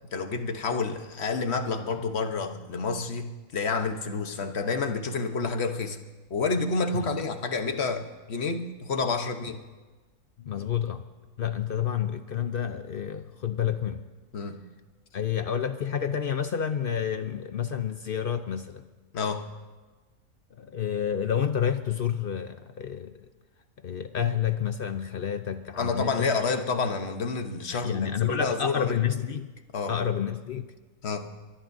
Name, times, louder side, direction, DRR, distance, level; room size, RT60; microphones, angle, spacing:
voice 1, 0.1-6.0 6.3-9.6 14.3-14.6 19.1-19.4 25.7-29.0 29.7-30.0 31.0-31.3, left 4 dB, 45° left, 6 dB, 1.2 m, -29 dB
voice 2, 10.4-11.1 11.4-14.0 15.1-18.8 20.6-23.3 23.8-26.3 27.7-29.5 29.9-30.7, left 8 dB, 65° left, 9 dB, 0.5 m, -29 dB
24.5 x 21.5 x 2.7 m, 1.3 s
omnidirectional pair, 1.7 m